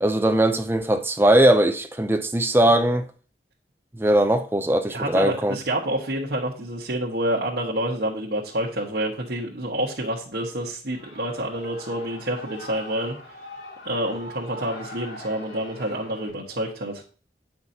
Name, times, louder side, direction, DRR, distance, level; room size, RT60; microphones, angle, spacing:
voice 1, 0.0-3.1 4.0-5.6, right 1 dB, 15° right, 0.5 m, -20 dB
voice 2, 4.9-13.3 13.8-17.0, right 1 dB, 70° right, 1.3 m, -28 dB
Shout / Cheering, 10.9-16.3, left 1 dB, 80° left, 2.2 m, -42 dB
8.9 x 6.0 x 2.8 m
head